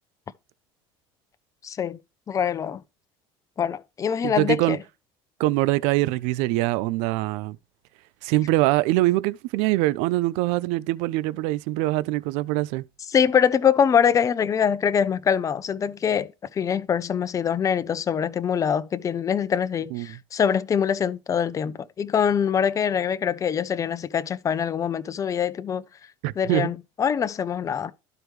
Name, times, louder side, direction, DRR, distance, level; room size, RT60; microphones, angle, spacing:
voice 1, 1.6-2.0 2.3-2.8 3.6-4.8 13.1-25.8 26.4-27.9, left 7 dB, 30° left, 0.6 m, -24 dB
voice 2, 4.2-4.8 5.4-7.6 8.2-12.8 19.9-20.2 26.2-26.7, right 18 dB, 75° right, 0.4 m, -23 dB
12.0 x 4.6 x 3.2 m
supercardioid pair, 110°, 12 cm